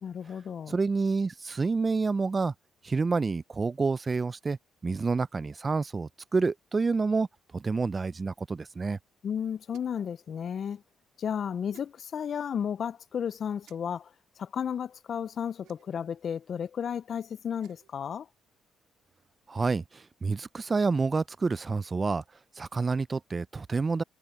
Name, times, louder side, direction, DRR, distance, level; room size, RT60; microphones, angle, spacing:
voice 1, 0.0-0.7 9.2-10.8 11.2-14.1 14.4-18.3, left 8 dB, 55° left, 0.3 m, -33 dB
voice 2, 0.7-2.5 2.8-4.6 4.8-7.3 7.5-9.0 19.5-22.2 22.6-24.0, right 4 dB, 30° right, 0.3 m, -28 dB
sound 1, 9.7-10.1 11.7-11.9 13.6-13.8 15.6-16.1 17.4-17.9, right 12 dB, 90° right, 1.9 m, -59 dB
cardioid pair, 90°, 0 cm